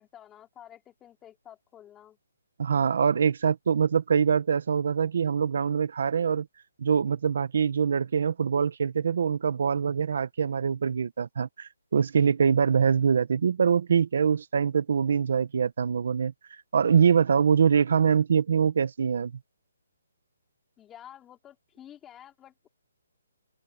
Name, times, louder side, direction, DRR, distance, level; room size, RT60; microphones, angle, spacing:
voice 1, 0.0-2.2 20.8-22.7, left 10 dB, 10° left, 3.6 m, -50 dB
voice 2, 2.6-6.5 6.8-19.3, right 7 dB, 55° right, 0.9 m, -24 dB
open air
hypercardioid pair, 175°, 0 cm